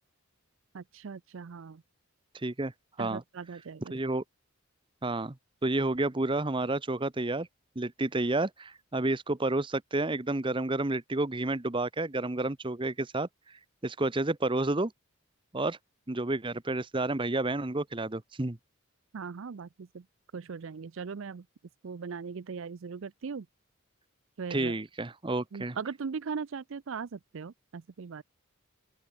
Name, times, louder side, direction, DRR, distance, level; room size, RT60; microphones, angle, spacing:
voice 1, 0.7-1.8 3.0-3.9 19.1-20.0 20.3-21.4 21.8-23.5 24.4-24.7 25.5-28.2, right 5 dB, 60° right, 0.5 m, -39 dB
voice 2, 2.4-2.7 3.0-3.2 3.9-4.2 5.0-5.3 5.6-7.5 7.8-13.3 13.8-14.9 15.5-15.8 16.1-18.6 24.5-25.8, right 2 dB, 20° right, 0.8 m, -30 dB
open air
head